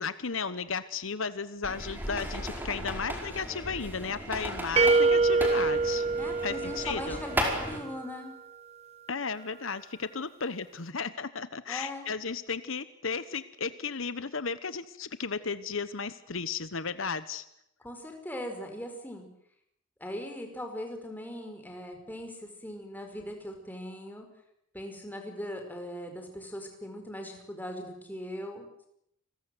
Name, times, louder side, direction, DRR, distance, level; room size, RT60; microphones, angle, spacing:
voice 1, 0.0-6.1 6.4-7.2 9.1-17.4, left 5 dB, 70° left, 13 dB, 1.2 m, -34 dB
sound 1, 1.6-7.8, equal, 10° right, 4.8 m, -36 dB
sound 2, 4.8-7.6, right 3 dB, 30° right, 1.1 m, -25 dB
voice 2, 6.2-8.3 11.7-12.1 17.8-19.3 20.0-24.3 24.7-28.9, left 1 dB, 10° left, 4 dB, 5.0 m, -40 dB
29.0 x 21.5 x 7.9 m, 0.75 s
head